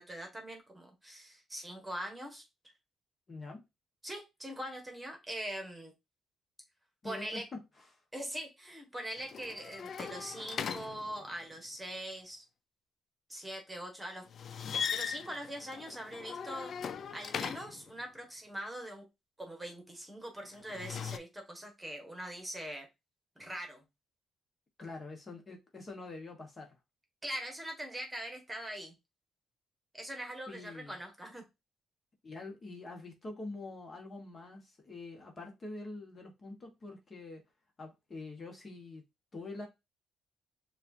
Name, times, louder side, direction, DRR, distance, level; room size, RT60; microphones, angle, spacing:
voice 1, 0.0-2.4 4.0-5.9 7.0-7.4 8.1-12.4 13.3-14.2 14.9-16.7 17.1-19.1 19.4-22.9 23.3-23.8 27.2-28.9 29.9-31.4, right 1 dB, 10° right, 1.5 m, -42 dB
voice 2, 3.3-3.6 7.0-7.6 7.9-8.0 24.8-26.8 30.5-31.0 32.2-37.4 37.8-39.0 39.3-39.7, left 2 dB, 35° left, 1.3 m, -45 dB
sound 1, 9.2-11.5 14.3-17.9 20.5-21.2, left 7 dB, 55° left, 0.4 m, -39 dB
6.6 x 2.5 x 2.6 m
cardioid pair, 90°, 0 cm